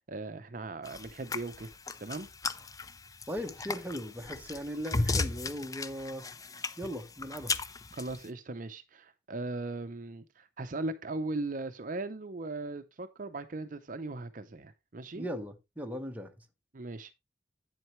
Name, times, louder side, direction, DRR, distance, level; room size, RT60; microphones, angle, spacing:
voice 1, 0.0-2.3 7.9-15.3 16.7-17.1, right 2 dB, 45° right, 0.6 m, -38 dB
sound 1, 0.8-8.3, left 3 dB, 20° left, 0.5 m, -36 dB
voice 2, 3.3-6.3 6.8-7.6 15.1-16.3, equal, 10° right, 1.0 m, -38 dB
8.8 x 7.7 x 3.1 m
head